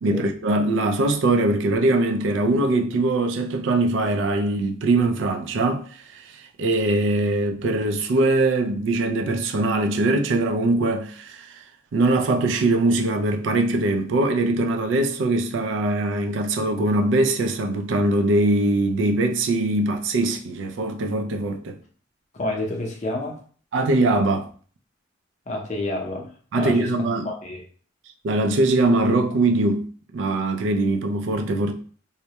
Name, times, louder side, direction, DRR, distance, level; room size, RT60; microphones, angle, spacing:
voice 1, 0.0-5.8 6.6-11.5 11.9-21.8 23.7-24.5 26.5-27.3 28.2-29.8 30.1-31.7, right 2 dB, 75° right, 0.3 m, -22 dB
voice 2, 22.3-23.4 25.5-26.3 26.5-26.9 27.2-27.6, left 2 dB, 40° left, 0.5 m, -29 dB
2.2 x 2.0 x 2.7 m
head